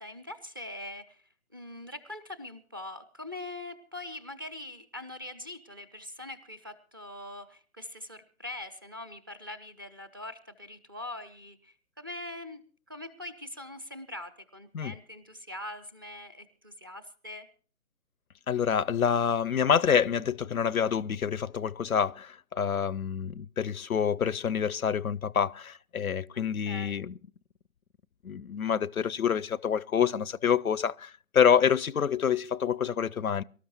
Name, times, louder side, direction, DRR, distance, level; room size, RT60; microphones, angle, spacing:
voice 1, 0.0-12.6 12.9-17.5 26.3-27.0, left 1 dB, 15° right, 0.6 m, -43 dB
voice 2, 18.5-27.1 28.2-33.4, left 7 dB, 85° left, 0.6 m, -27 dB
24.0 x 13.0 x 2.9 m
figure-of-eight pair, 140°, 41 cm